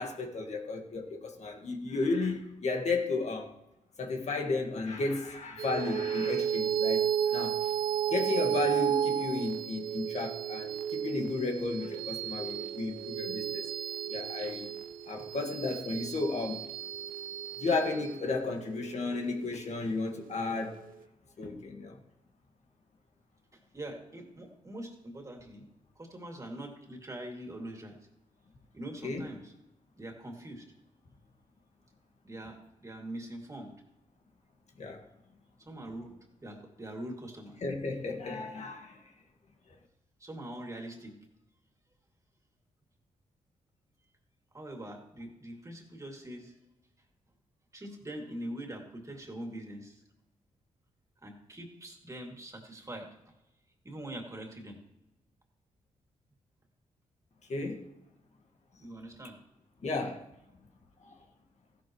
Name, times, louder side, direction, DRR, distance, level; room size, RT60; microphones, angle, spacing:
voice 1, 0.0-3.5 4.0-7.6 8.1-13.7 14.1-14.7 15.1-16.7 17.6-20.8 21.4-22.0 29.0-29.3 34.8-35.0 37.6-39.0 57.5-57.8 59.8-60.2 61.0-61.1, left 3 dB, 55° left, 3 dB, 1.8 m, -33 dB
sound 1, 5.6-20.3, right 9 dB, 80° right, 0.7 m, -33 dB
voice 2, 23.5-25.7 26.0-28.0 28.7-29.5 30.0-30.7 32.2-33.7 35.6-37.6 40.2-41.2 44.5-46.6 47.7-50.0 51.2-53.1 53.8-54.8 58.8-59.4, right 1 dB, 20° right, 1 dB, 2.6 m, -43 dB
15.0 x 11.0 x 3.2 m, 0.95 s
cardioid pair, 80°, 14 cm